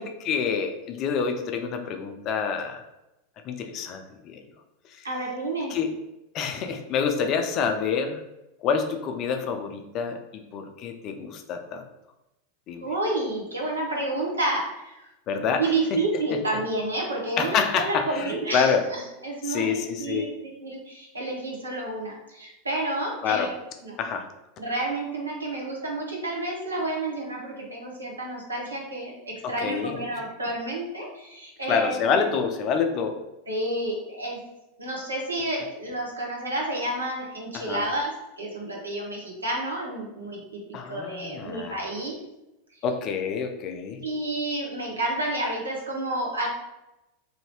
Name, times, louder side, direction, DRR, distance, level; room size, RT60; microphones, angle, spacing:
voice 1, 0.0-2.8 3.5-4.4 4.9-5.1 5.7-5.9 6.3-8.2 8.6-11.8 12.7-12.9 15.3-15.7 17.4-18.8 19.4-20.3 23.2-23.5 24.0-24.3 29.4-30.0 31.7-33.2 37.5-37.9 40.7-41.8 42.8-44.0, left 6 dB, 40° left, 6 dB, 0.4 m, -27 dB
voice 2, 5.0-5.7 12.8-15.1 15.6-20.3 20.6-23.5 23.8-24.0 24.6-32.2 33.5-34.4 34.8-40.6 40.9-42.2 44.0-46.5, right 2 dB, 85° right, -2 dB, 0.9 m, -30 dB
2.8 x 2.7 x 3.0 m, 0.94 s
figure-of-eight pair, 90°, 0 cm